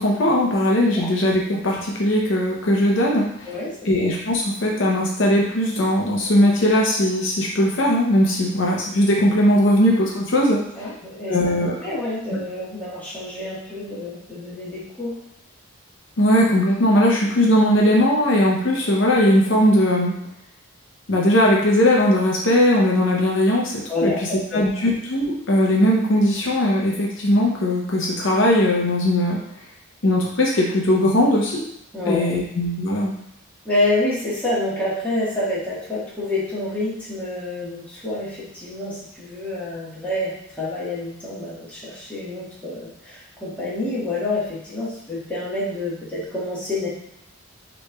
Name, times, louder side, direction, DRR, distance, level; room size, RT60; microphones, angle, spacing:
voice 1, 0.0-3.5 3.8-10.6 11.3-11.8 16.2-20.1 21.1-29.4 30.0-31.6 32.1-33.1, left 1 dB, 60° left, -2 dB, 0.6 m, -19 dB
voice 2, 3.5-4.1 10.8-11.4 11.8-15.1 23.9-24.7 31.9-32.3 33.6-46.9, left 2 dB, 5° left, -9 dB, 1.3 m, -27 dB
6.1 x 3.1 x 2.2 m, 0.78 s
head